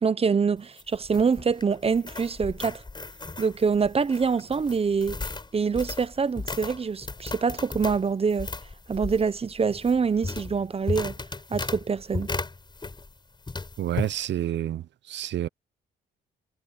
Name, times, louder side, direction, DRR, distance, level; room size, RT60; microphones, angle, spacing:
voice 1, 0.0-2.8 3.4-5.2 5.5-8.5 8.9-11.1 11.5-12.3, right 5 dB, 30° right, 0.8 m, -25 dB
sound 1, 0.6-13.2 13.5-14.2, left 3 dB, 25° left, 4.7 m, -36 dB
voice 2, 13.8-15.5, right 12 dB, 65° right, 0.8 m, -29 dB
cardioid pair, 90°, 20 cm